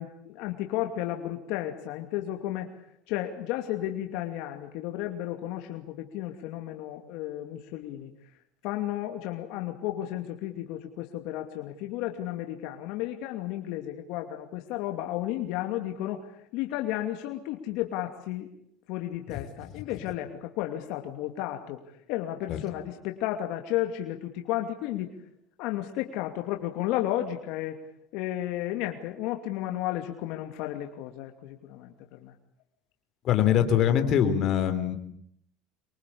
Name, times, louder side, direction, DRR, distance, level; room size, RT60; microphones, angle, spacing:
voice 1, 0.0-2.7 3.1-8.1 8.6-18.5 18.9-21.8 22.1-25.1 25.6-27.8 28.1-32.3, left 13 dB, 65° left, 4 dB, 2.6 m, -33 dB
voice 2, 33.2-35.0, left 9 dB, 40° left, 7 dB, 3.6 m, -23 dB
25.5 x 24.0 x 8.7 m, 0.72 s
cardioid pair, 145°, 0 cm